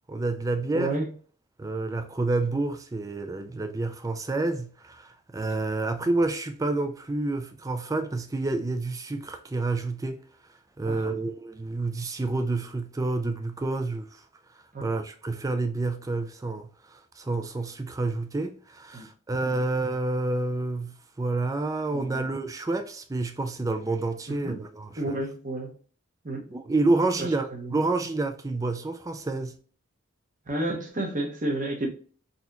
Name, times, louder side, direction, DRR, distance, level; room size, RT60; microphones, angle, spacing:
voice 1, 0.1-1.0 1.6-10.2 10.8-14.2 14.8-25.2 26.5-29.5, right 2 dB, 15° right, 0.3 m, -29 dB
voice 2, 0.7-1.1 10.8-11.2 14.7-14.9 18.9-19.1 19.4-19.6 21.9-22.3 24.3-24.6 25.0-25.7 26.2-26.5 27.2-27.8 30.5-31.9, right 1 dB, 35° right, 0.9 m, -31 dB
4.0 x 2.8 x 2.5 m
head